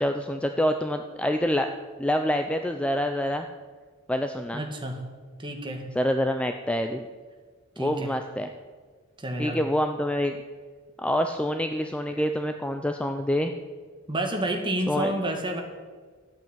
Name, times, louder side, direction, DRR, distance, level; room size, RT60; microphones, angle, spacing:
voice 1, 0.0-1.7 2.0-3.5 4.1-4.6 6.0-7.1 7.8-8.5 9.4-10.3 11.0-13.5 14.9-15.1, equal, 5° left, 6 dB, 0.6 m, -26 dB
voice 2, 4.5-5.0 5.4-5.8 7.8-8.1 9.2-9.6 14.1-15.6, right 1 dB, 25° right, 2 dB, 2.3 m, -29 dB
13.5 x 9.0 x 9.1 m, 1.5 s
head